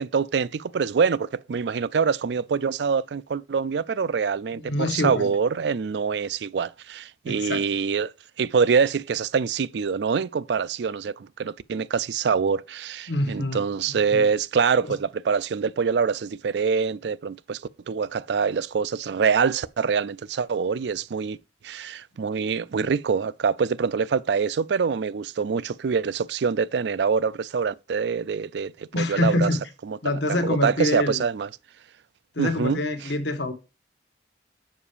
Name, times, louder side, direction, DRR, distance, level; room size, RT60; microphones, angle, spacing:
voice 1, 0.0-17.6 17.9-21.4 21.6-30.0 30.3-31.5 32.4-33.1, right 6 dB, 70° right, 0.4 m, -25 dB
voice 2, 4.5-5.3 7.3-7.6 13.1-13.6 14.1-14.2 28.9-29.6 30.0-31.2 32.3-33.5, left 2 dB, 75° left, 1.4 m, -25 dB
7.4 x 5.4 x 5.0 m
head